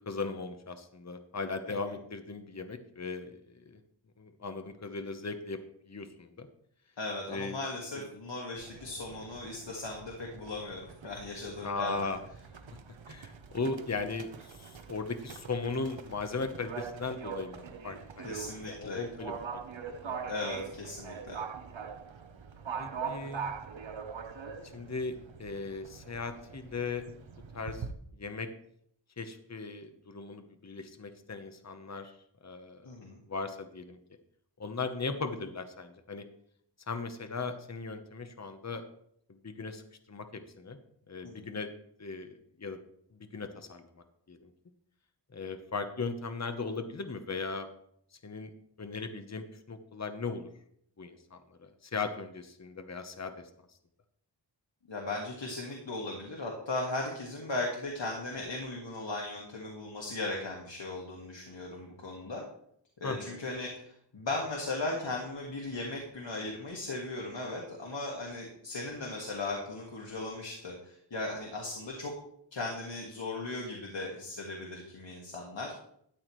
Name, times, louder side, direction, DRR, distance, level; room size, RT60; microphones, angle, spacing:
voice 1, 0.1-3.8 4.2-5.6 5.9-6.5 7.3-7.7 8.0-8.1 11.6-12.2 13.1-18.4 18.6-20.3 22.8-23.5 24.7-27.0 27.5-27.8 28.1-28.5 29.2-32.1 32.4-32.9 33.3-34.0 34.6-36.2 36.9-38.8 39.4-39.8 40.1-40.8 41.1-41.7 42.0-42.8 43.1-43.8 44.3-44.5 45.3-47.7 48.2-48.5 48.8-50.5 51.0-53.4 63.0-63.4, left 4 dB, 35° left, 8 dB, 1.0 m, -38 dB
voice 2, 7.0-11.9 18.2-19.0 20.3-21.4 32.8-33.2 41.2-41.5 54.9-62.4 63.0-72.1 72.5-75.7, left 2 dB, 75° left, -1 dB, 1.8 m, -37 dB
Livestock farm animals working animals, 8.6-27.9, right 6 dB, 80° right, 0.9 m, -43 dB
13.0 x 8.6 x 3.1 m, 0.69 s
wide cardioid pair, 70°, 45 cm